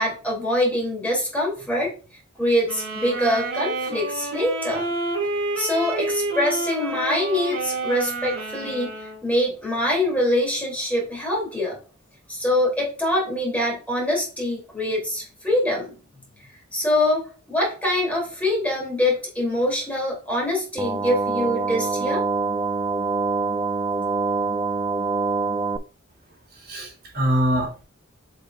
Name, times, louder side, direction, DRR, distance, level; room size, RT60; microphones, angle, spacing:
voice 1, 0.0-1.9 2.4-4.8 5.6-11.8 12.3-16.0 16.7-22.2, left 1 dB, 5° left, -3 dB, 3.1 m, -24 dB
sound 1, 2.6-9.2, right 2 dB, 75° right, 2.4 m, -29 dB
sound 2, 20.8-25.8, right 4 dB, 15° right, 0.4 m, -25 dB
voice 2, 26.5-27.8, equal, 50° right, -3 dB, 2.6 m, -24 dB
7.8 x 5.1 x 2.5 m, 0.36 s
head